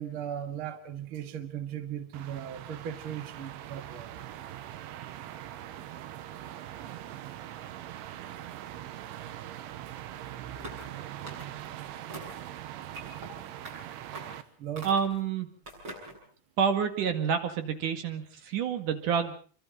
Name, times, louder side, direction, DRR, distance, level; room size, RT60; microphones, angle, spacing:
voice 1, 0.0-4.1 14.6-14.9, right 9 dB, 70° right, 1.2 m, -37 dB
sound 1, 2.1-14.4, right 12 dB, 90° right, 3.6 m, -42 dB
sound 2, 10.6-10.9 11.2-11.7 12.1-12.5 12.9-13.3 13.6-13.8 14.1-14.4 14.8-15.2 15.7-16.2, right 2 dB, 25° right, 7.8 m, -43 dB
voice 2, 14.8-15.5 16.6-19.4, right 7 dB, 50° right, 2.9 m, -28 dB
28.5 x 24.0 x 3.9 m
omnidirectional pair, 5.4 m